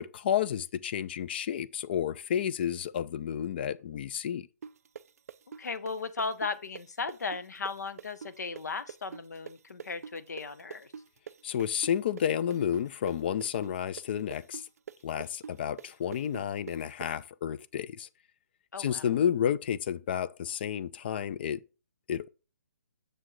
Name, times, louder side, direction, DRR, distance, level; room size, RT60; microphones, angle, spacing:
voice 1, 0.0-4.5 11.4-14.7 15.0-18.1 18.8-21.6 22.1-22.3, left 9 dB, 35° left, 0.4 m, -31 dB
sound 1, 4.6-12.3 12.5-17.1, right 7 dB, 60° right, 0.4 m, -44 dB
voice 2, 5.6-10.9 18.7-19.1, left 4 dB, 80° left, 0.8 m, -36 dB
7.6 x 6.3 x 3.1 m
hypercardioid pair, 155°, 9 cm